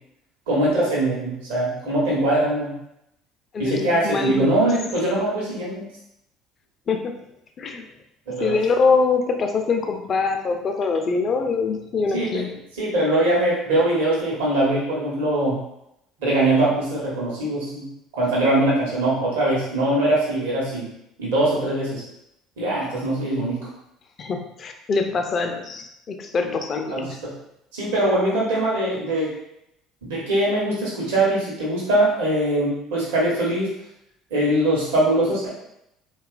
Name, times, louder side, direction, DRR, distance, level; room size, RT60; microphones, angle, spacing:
voice 1, 0.5-2.8 3.6-5.9 8.3-8.6 12.1-12.4 12.8-15.6 16.2-17.9 18.1-20.9 21.2-22.0 22.6-23.7 26.9-27.3 27.7-29.4 30.1-33.7 34.3-35.5, right 1 dB, 80° right, -6 dB, 0.9 m, -22 dB
voice 2, 3.5-4.7 6.9-7.1 7.6-7.9 8.4-12.5 24.2-27.2, left 4 dB, 45° left, 5 dB, 0.4 m, -24 dB
2.9 x 2.3 x 2.3 m, 0.81 s
hypercardioid pair, 65°, 0 cm